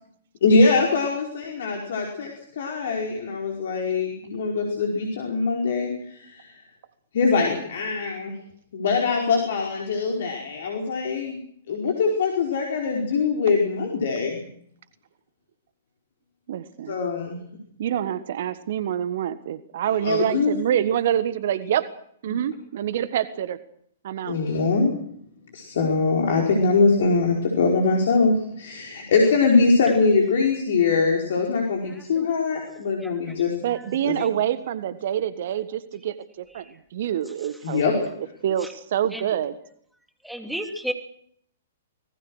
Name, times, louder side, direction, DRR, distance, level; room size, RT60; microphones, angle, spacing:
voice 1, 0.4-6.5 7.1-8.4 8.7-11.4 11.7-14.4 16.9-17.4 20.0-20.6 24.2-25.0 25.5-33.5 34.0-34.1 37.6-37.9, left 4 dB, 55° left, 1 dB, 5.0 m, -22 dB
voice 2, 16.5-17.0 17.8-21.9 22.2-23.6 24.0-24.4 33.6-36.7 36.9-38.1 38.4-39.5, right 10 dB, 55° right, 14 dB, 1.5 m, -26 dB
voice 3, 31.9-32.3 33.0-33.3 34.2-34.3 36.6-36.7 38.6-38.7 39.1-39.3 40.2-40.9, equal, ahead, 5 dB, 3.2 m, -34 dB
25.5 x 20.0 x 6.5 m, 0.67 s
figure-of-eight pair, 115°, 0 cm